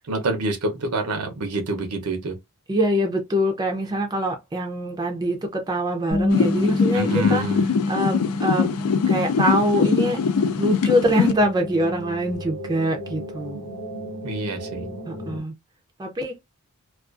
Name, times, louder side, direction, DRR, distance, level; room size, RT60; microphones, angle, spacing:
voice 1, 0.1-2.4 6.9-7.6 14.2-14.9, right 2 dB, 80° right, 0.7 m, -27 dB
voice 2, 2.7-8.8 9.1-10.2 10.6-13.6 15.1-15.5 16.0-16.4, equal, 20° right, 0.4 m, -24 dB
Bass guitar, 6.1-12.4, left 2 dB, 30° left, 0.9 m, -29 dB
sound 1, 6.3-11.3, left 5 dB, 80° left, 0.4 m, -22 dB
sound 2, 10.3-15.4, equal, 55° left, 0.8 m, -37 dB
2.4 x 2.3 x 2.3 m
head